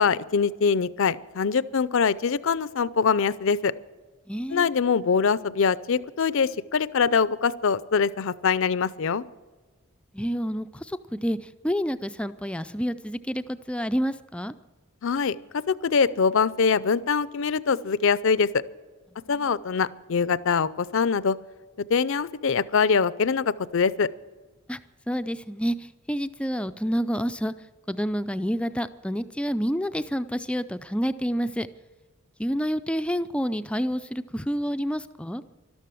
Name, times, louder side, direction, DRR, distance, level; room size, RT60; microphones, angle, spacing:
voice 1, 0.0-3.7 4.5-9.2 15.0-18.5 19.3-21.4 21.9-24.1, left 5 dB, 60° left, 18 dB, 0.5 m, -23 dB
voice 2, 4.3-4.7 10.1-11.4 11.6-14.5 24.7-24.8 25.1-27.5 27.9-31.7 32.4-35.4, equal, 5° left, 11 dB, 0.3 m, -28 dB
12.5 x 12.5 x 7.6 m, 1.3 s
head